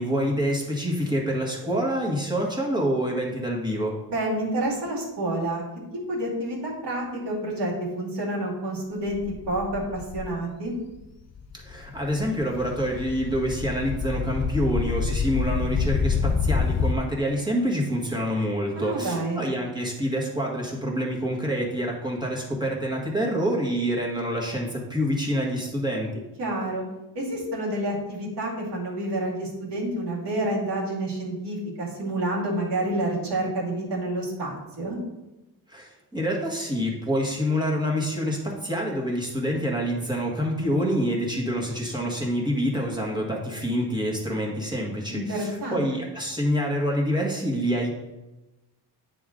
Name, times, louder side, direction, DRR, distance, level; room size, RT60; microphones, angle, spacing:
voice 1, 0.0-4.0 11.5-26.2 35.7-47.9, equal, 10° right, -3 dB, 1.7 m, -27 dB
voice 2, 4.1-5.6 6.1-9.2 9.5-10.8 18.8-19.4 26.4-26.8 27.1-35.0 45.1-45.8, right 1 dB, 70° right, -4 dB, 2.4 m, -29 dB
sound 1, 9.1-10.3 10.9-11.1 11.4-16.9, left 5 dB, 40° left, 0.5 m, -27 dB
9.3 x 3.7 x 3.7 m, 1.0 s
cardioid pair, 100°, 43 cm